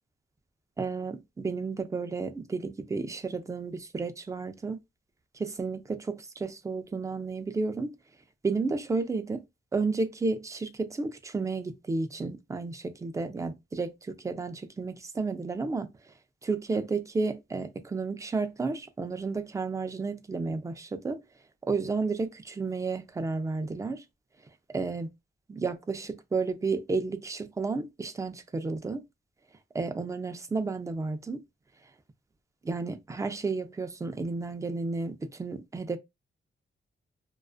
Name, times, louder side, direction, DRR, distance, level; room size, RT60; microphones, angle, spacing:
voice 1, 0.8-4.8 5.3-8.0 8.4-9.4 9.7-15.9 16.4-21.2 21.7-24.0 24.7-25.1 25.5-29.0 29.7-31.4 32.6-36.0, right 4 dB, 15° right, 0.3 m, -32 dB
2.4 x 2.3 x 2.3 m
cardioid pair, 100°, 21 cm